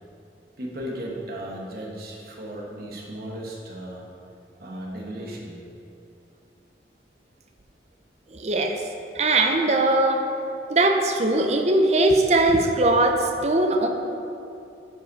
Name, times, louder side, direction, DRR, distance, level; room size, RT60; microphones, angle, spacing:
voice 1, 0.6-4.1 4.6-5.6, right 1 dB, 55° right, -2 dB, 1.2 m, -35 dB
voice 2, 8.3-8.8 9.1-10.2 10.7-13.9, right 2 dB, 35° right, 4 dB, 0.6 m, -20 dB
9.9 x 5.3 x 4.1 m, 2.8 s
head